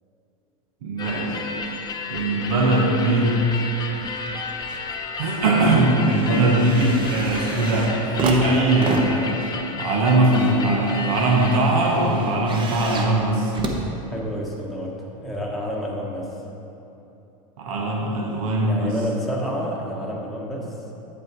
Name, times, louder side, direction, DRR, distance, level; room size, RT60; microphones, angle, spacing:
voice 1, 0.8-1.4 2.1-3.4 5.2-9.4 9.8-13.5 17.6-18.9, right 2 dB, 75° right, -1 dB, 1.2 m, -20 dB
sound 1, 1.0-11.6, left 4 dB, 20° left, 0.7 m, -32 dB
sound 2, 4.1-4.9 5.2-14.6 15.4-15.5, right 2 dB, 25° right, 0.9 m, -32 dB
voice 2, 14.1-15.0 15.2-16.3 18.6-20.7, equal, ahead, -4 dB, 1.1 m, -29 dB
8.4 x 5.4 x 4.8 m, 2.9 s
supercardioid pair, 125°, 18 cm